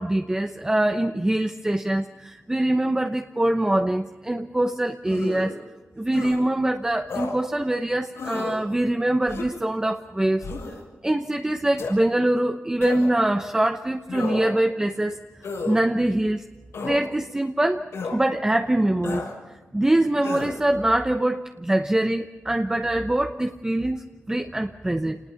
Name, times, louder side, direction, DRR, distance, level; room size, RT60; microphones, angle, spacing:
voice 1, 0.0-5.6 6.0-10.5 11.0-15.2 15.6-16.4 16.8-17.8 18.1-19.3 19.7-25.2, right 1 dB, 15° right, 5 dB, 0.9 m, -23 dB
sound 1, 5.1-5.5 6.1-6.4 7.1-7.3 8.1-8.6 9.3-9.6 10.4-10.8 11.8-11.9 12.8-13.2 14.1-14.6 15.4-15.8 16.7-17.0 17.9-18.2 19.0-19.3 20.2-20.6, left 3 dB, 90° left, 7.0 m, -32 dB
27.5 x 20.0 x 5.9 m, 1.2 s
wide cardioid pair, 90°, 5 cm